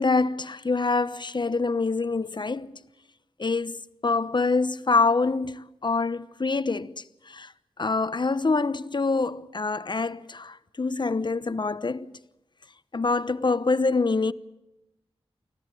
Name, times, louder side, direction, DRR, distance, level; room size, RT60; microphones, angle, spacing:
voice 1, 0.0-2.7 3.4-6.9 7.3-7.5 7.8-12.0 12.9-14.3, left 3 dB, 45° left, 1.0 m, -25 dB
25.0 x 16.0 x 9.1 m
cardioid pair, 45°, 11 cm